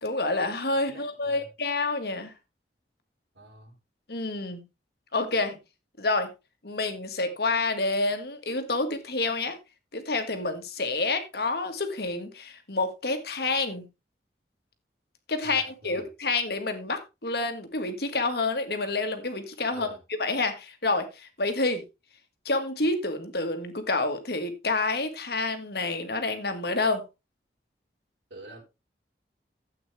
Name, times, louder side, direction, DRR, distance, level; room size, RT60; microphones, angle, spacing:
voice 1, 0.0-2.3 4.1-4.6 5.1-5.6 6.0-6.3 6.6-9.6 9.9-13.9 15.3-21.8 22.5-27.0, left 3 dB, 60° left, 1.8 m, -28 dB
voice 2, 0.9-1.5 3.3-3.8 15.4-16.0 19.7-20.0 28.3-28.6, right 1 dB, 90° right, 4.3 m, -46 dB
13.0 x 8.5 x 3.3 m
head